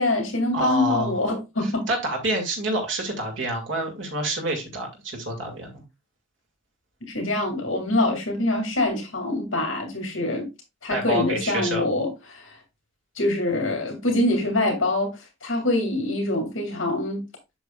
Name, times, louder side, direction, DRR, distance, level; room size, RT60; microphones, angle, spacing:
voice 1, 0.0-1.9 7.0-10.5 10.8-12.6 13.2-17.2, left 2 dB, 70° left, 2.2 m, -25 dB
voice 2, 0.5-1.2 1.6-5.8 10.9-11.9, right 1 dB, 65° right, 2.2 m, -28 dB
8.1 x 6.1 x 2.3 m
head